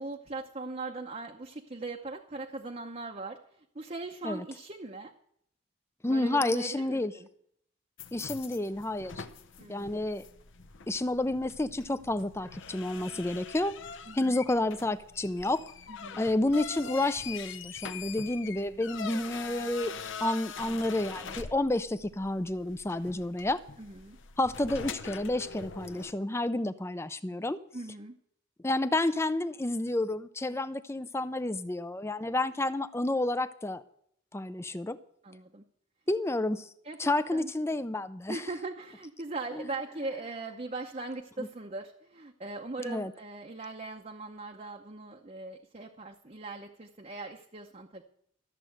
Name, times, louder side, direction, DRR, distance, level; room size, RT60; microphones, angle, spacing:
voice 1, 0.0-5.1 6.1-7.3 9.6-10.0 14.1-14.4 15.9-16.3 23.8-24.2 27.7-28.1 35.2-35.6 36.8-37.5 38.3-48.0, right 3 dB, 30° right, 2 dB, 0.8 m, -40 dB
voice 2, 6.0-7.1 8.1-9.2 9.7-10.2 10.9-13.8 14.1-15.6 16.2-19.9 20.2-23.6 24.4-27.6 28.6-33.8 34.3-35.0 36.1-36.7 37.0-38.4 39.6-39.7 41.4-41.5 42.9-43.1, left 2 dB, 10° left, 14 dB, 0.4 m, -30 dB
sound 1, 8.0-26.1, left 6 dB, 60° left, 0.7 m, -44 dB
13.5 x 7.5 x 7.9 m, 0.70 s
head